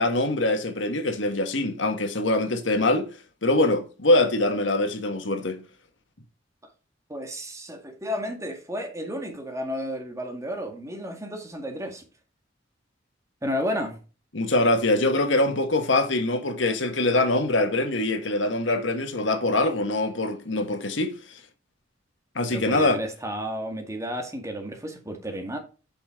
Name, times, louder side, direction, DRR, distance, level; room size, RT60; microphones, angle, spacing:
voice 1, 0.0-3.1 3.4-5.6 14.3-21.4 22.3-23.0, left 2 dB, 90° left, 1.6 m, -23 dB
voice 2, 7.1-12.0 13.4-14.0 22.5-25.6, equal, 15° right, 1.8 m, -32 dB
8.6 x 6.1 x 3.6 m
head